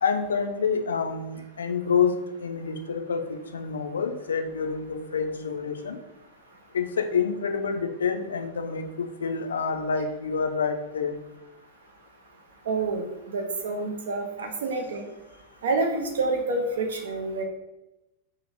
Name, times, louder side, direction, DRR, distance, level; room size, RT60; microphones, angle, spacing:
voice 1, 0.0-6.0 6.7-11.2, left 5 dB, 70° left, 6 dB, 0.3 m, -28 dB
voice 2, 12.7-13.0 13.3-15.0 15.6-17.4, right 3 dB, 65° right, 3 dB, 0.6 m, -28 dB
2.8 x 2.5 x 4.1 m, 0.96 s
figure-of-eight pair, 90°, 0 cm